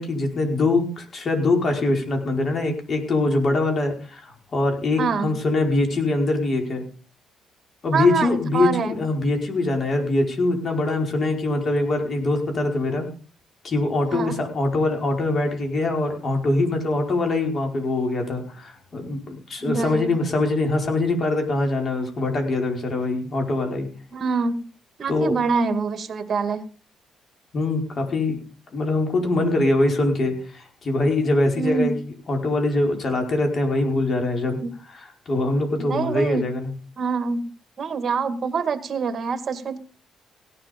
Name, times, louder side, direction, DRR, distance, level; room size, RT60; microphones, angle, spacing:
voice 1, 0.0-6.8 7.8-13.1 13.6-23.9 25.1-25.3 27.5-28.4 28.7-34.6 34.9-36.7, left 2 dB, 45° left, 3 dB, 5.0 m, -23 dB
voice 2, 5.0-5.3 7.9-9.0 14.1-14.4 19.6-20.1 24.1-24.7 25.0-26.7 31.5-32.0 34.6-34.7 35.8-36.5 37.0-37.5 37.8-39.8, right 5 dB, 45° right, 9 dB, 2.0 m, -25 dB
17.0 x 11.5 x 5.3 m, 0.40 s
cardioid pair, 90°, 0 cm